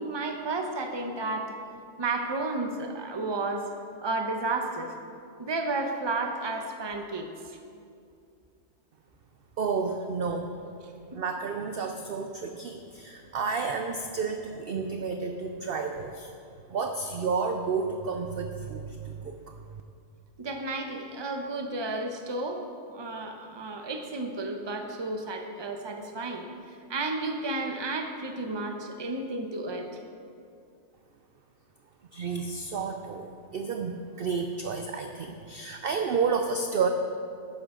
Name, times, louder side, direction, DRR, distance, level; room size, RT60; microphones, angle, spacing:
voice 1, 0.0-1.6 2.0-3.7 4.0-4.9 5.4-7.3 20.4-22.6 22.9-26.5 26.9-29.9, right 2 dB, 25° right, 4 dB, 0.6 m, -32 dB
voice 2, 9.6-10.5 11.1-16.3 16.7-19.6 32.1-36.9, right 5 dB, 65° right, 5 dB, 0.6 m, -31 dB
13.5 x 9.9 x 3.8 m, 2.4 s
omnidirectional pair, 1.6 m